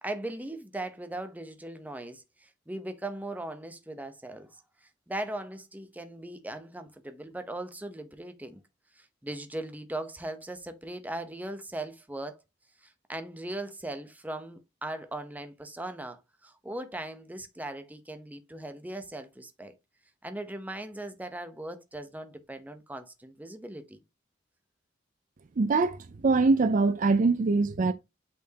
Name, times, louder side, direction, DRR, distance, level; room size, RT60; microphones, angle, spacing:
voice 1, 0.0-8.6 8.9-12.4 12.8-19.8 20.2-24.0, right 1 dB, 10° right, 0.8 m, -39 dB
voice 2, 25.6-27.9, right 3 dB, 45° right, 0.4 m, -23 dB
8.3 x 4.3 x 2.8 m
head